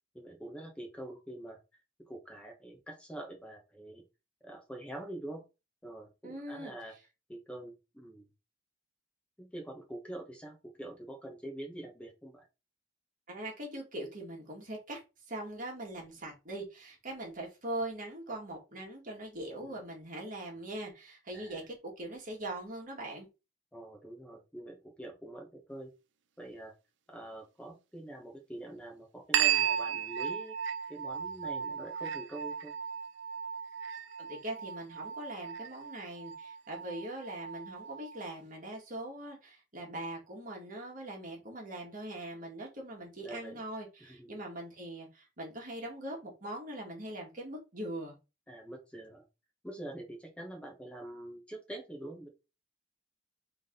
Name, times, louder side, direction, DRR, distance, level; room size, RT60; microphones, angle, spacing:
voice 1, 0.1-1.6 2.1-4.0 4.4-5.4 5.8-6.9 7.3-8.3 9.4-12.5 19.6-19.8 21.3-21.6 23.7-25.9 26.4-26.7 27.1-30.6 30.9-32.7 43.2-43.6 44.0-44.4 48.5-49.2 49.6-52.3, right 1 dB, 5° left, 3 dB, 1.4 m, -45 dB
voice 2, 6.2-6.7 13.3-15.0 15.3-23.3 34.2-48.2, right 1 dB, 45° right, 0 dB, 1.9 m, -41 dB
sound 1, 29.3-38.4, right 9 dB, 70° right, 0.5 m, -35 dB
3.9 x 3.6 x 3.8 m, 0.28 s
head